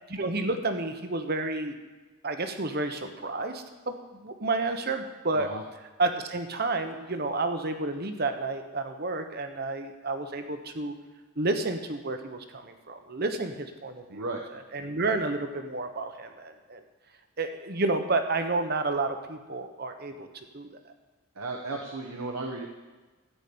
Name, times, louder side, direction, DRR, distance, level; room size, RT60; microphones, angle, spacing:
voice 1, 0.1-1.8 2.2-5.5 6.0-10.9 11.4-14.2 14.7-16.8 17.4-20.3 20.5-20.8, right 3 dB, 45° right, 7 dB, 1.0 m, -30 dB
voice 2, 14.1-14.4 21.3-22.7, right 3 dB, 80° right, 0 dB, 1.2 m, -34 dB
14.5 x 5.1 x 8.6 m, 1.3 s
head